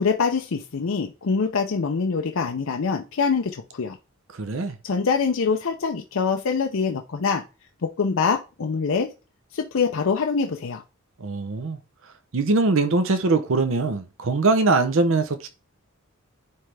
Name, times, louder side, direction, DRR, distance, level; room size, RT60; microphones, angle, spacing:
voice 1, 0.0-4.0 4.8-7.4 7.8-9.1 9.5-10.8, left 5 dB, 65° left, 0.5 m, -24 dB
voice 2, 4.3-4.8 11.2-11.8 12.3-15.5, right 3 dB, 65° right, 0.6 m, -22 dB
9.7 x 3.3 x 3.3 m
head